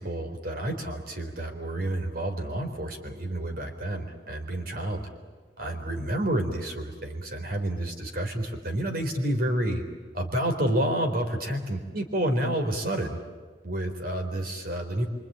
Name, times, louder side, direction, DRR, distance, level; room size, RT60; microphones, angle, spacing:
voice 1, 0.0-5.1 5.6-9.8 10.1-13.2 13.6-15.1, right 1 dB, 55° right, 4 dB, 4.0 m, -29 dB
26.0 x 25.5 x 8.8 m, 1.5 s
head